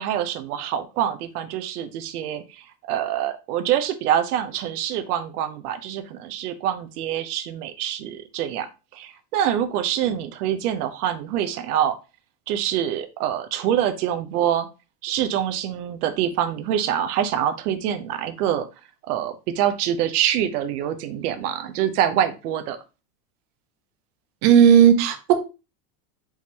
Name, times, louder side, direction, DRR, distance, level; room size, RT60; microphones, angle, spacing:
voice 1, 0.0-8.7 8.9-12.0 12.5-14.7 15.0-18.7 19.1-22.8, right 10 dB, 80° right, 0.8 m, -25 dB
voice 2, 24.4-25.4, right 8 dB, 30° right, 0.4 m, -14 dB
4.6 x 3.7 x 2.8 m
supercardioid pair, 170°, 45 cm